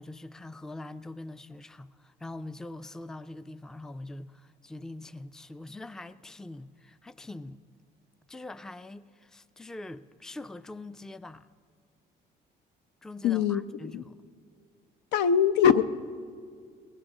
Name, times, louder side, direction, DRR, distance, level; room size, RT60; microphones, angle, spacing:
voice 1, 0.0-7.6 8.3-11.5 13.0-14.2, left 2 dB, 5° left, 0.3 m, -43 dB
voice 2, 13.2-13.6 13.9-14.0 15.1-15.8, left 8 dB, 85° left, 0.6 m, -22 dB
20.5 x 18.5 x 3.8 m
cardioid pair, 110°, 17 cm